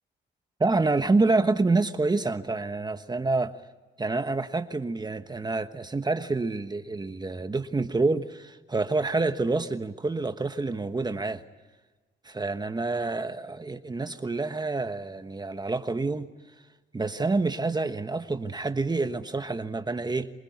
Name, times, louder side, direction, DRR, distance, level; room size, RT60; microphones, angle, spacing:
voice 1, 0.6-3.5 4.0-11.4 12.2-16.3 16.9-20.3, right 3 dB, 20° right, 1.2 m, -27 dB
26.5 x 19.5 x 9.4 m
cardioid pair, 90°, 20 cm